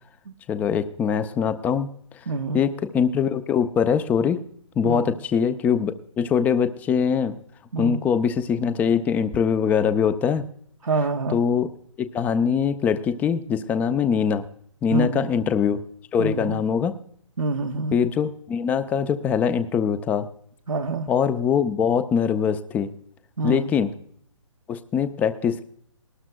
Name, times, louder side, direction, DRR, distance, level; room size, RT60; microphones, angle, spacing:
voice 1, 0.5-1.9 2.5-4.4 4.8-7.4 7.8-10.4 11.3-11.7 12.0-14.5 14.8-15.8 16.1-17.0 17.9-20.3 21.1-22.9 23.4-23.9 24.7-25.7, left 7 dB, 10° left, 12 dB, 0.5 m, -22 dB
voice 2, 2.3-2.6 4.8-5.1 7.7-8.0 10.8-11.4 14.9-15.3 16.2-16.6 17.4-17.9 20.7-21.1 23.4-23.7, right 3 dB, 80° right, 2 dB, 1.0 m, -26 dB
19.5 x 12.5 x 2.2 m, 0.65 s
figure-of-eight pair, 140°, 17 cm